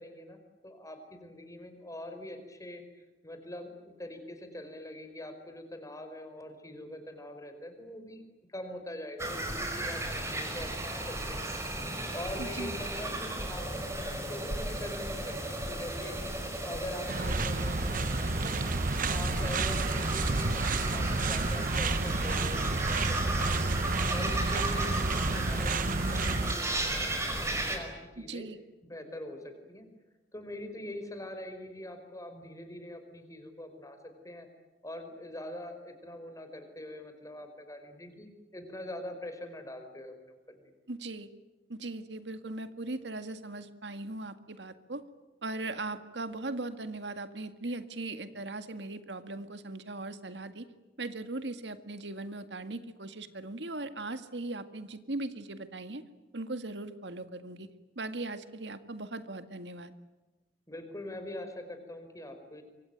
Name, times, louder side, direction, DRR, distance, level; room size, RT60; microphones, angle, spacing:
voice 1, 0.0-8.2 8.5-11.5 11.9-18.6 18.8-23.2 23.4-23.7 24.1-27.2 27.4-28.5 28.8-29.9 30.3-34.5 34.8-40.6 60.7-62.6, left 1 dB, 20° left, 7 dB, 4.9 m, -43 dB
sound 1, 9.2-27.8, right 1 dB, 15° right, 5.5 m, -35 dB
voice 2, 12.4-12.8 28.3-28.6 40.9-41.3 41.7-45.0 45.4-50.7 51.0-56.0 56.3-57.7 58.0-59.9, right 2 dB, 85° right, 10 dB, 1.9 m, -39 dB
sound 2, 17.1-26.5, right 3 dB, 50° right, 1.0 m, -30 dB
26.0 x 24.0 x 9.2 m, 1.1 s
head